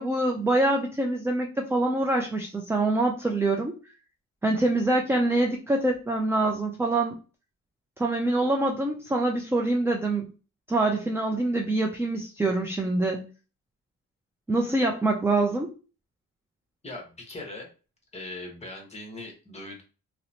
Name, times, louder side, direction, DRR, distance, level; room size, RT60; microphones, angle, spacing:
voice 1, 0.0-3.7 4.4-7.1 8.0-10.3 10.7-13.3 14.5-15.7, right 2 dB, 10° right, 2 dB, 0.3 m, -25 dB
voice 2, 16.8-17.7 18.1-19.8, left 2 dB, 20° left, 2 dB, 0.9 m, -40 dB
2.8 x 2.0 x 2.7 m, 0.34 s
cardioid pair, 90°, 30 cm